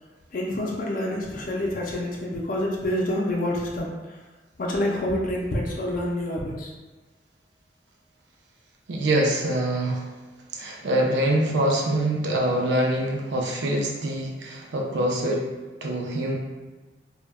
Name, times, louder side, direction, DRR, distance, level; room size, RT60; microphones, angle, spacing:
voice 1, 0.3-3.9 4.6-6.7, left 1 dB, 50° left, -1 dB, 0.4 m, -27 dB
voice 2, 8.9-10.1 10.5-15.5 15.8-16.3, right 1 dB, 80° right, 0 dB, 0.5 m, -24 dB
2.1 x 2.1 x 3.4 m, 1.2 s
head